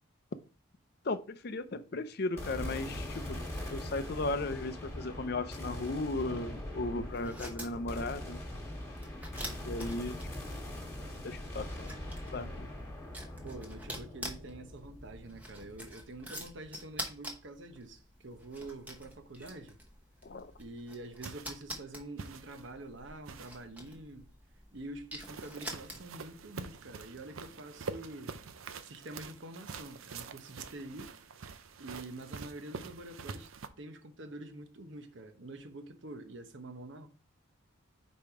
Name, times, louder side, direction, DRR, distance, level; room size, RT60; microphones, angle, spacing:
voice 1, 1.0-3.4 3.7-8.4 9.6-10.2 11.2-11.9 12.3-12.7 20.2-20.5, left 2 dB, 50° left, 0.5 m, -36 dB
sound 1, 2.4-16.7, left 1 dB, 10° left, 1.7 m, -42 dB
sound 2, 7.1-26.3, right 1 dB, 5° right, 0.9 m, -47 dB
voice 2, 9.8-10.2 13.4-19.8 20.6-24.3 24.7-28.4 28.8-31.2 31.8-33.5 33.8-37.1, right 2 dB, 60° right, 0.9 m, -46 dB
sound 3, 21.2-21.6 22.2-22.7 23.3-23.7 25.2-33.7, right 5 dB, 80° right, 0.6 m, -45 dB
5.2 x 4.3 x 4.7 m
head